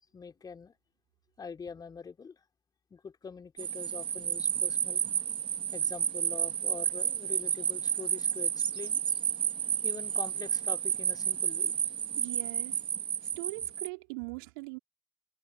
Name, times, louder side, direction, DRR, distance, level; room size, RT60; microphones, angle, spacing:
voice 1, 0.1-0.7 1.4-2.4 2.9-5.0 5.7-9.0 9.8-11.7, left 5 dB, 30° left, 3.7 m, -44 dB
sound 1, 3.6-13.9, right 9 dB, 40° right, 3.7 m, -31 dB
voice 2, 12.2-12.8 13.2-14.8, right 30 dB, 65° right, 3.7 m, -41 dB
figure-of-eight pair, 55°, 14 cm